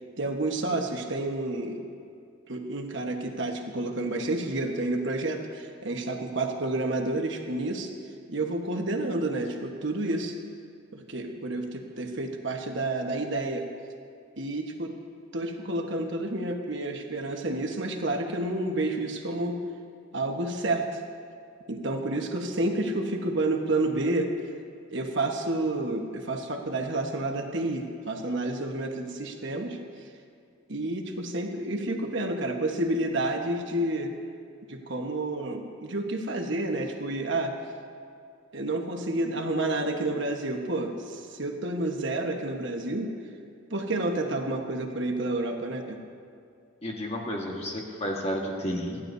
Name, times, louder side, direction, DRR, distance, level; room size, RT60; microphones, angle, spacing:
voice 1, 0.2-1.8 2.5-7.9 8.3-10.3 10.9-13.7 14.4-14.9 15.3-19.6 20.1-21.0 21.7-24.3 24.9-29.8 30.7-34.2 34.7-37.5 38.5-43.1 43.7-46.0, right 2 dB, 55° right, 2 dB, 1.3 m, -30 dB
voice 2, 46.8-49.0, equal, 30° left, -1 dB, 1.5 m, -31 dB
28.5 x 11.5 x 2.7 m, 2.4 s
head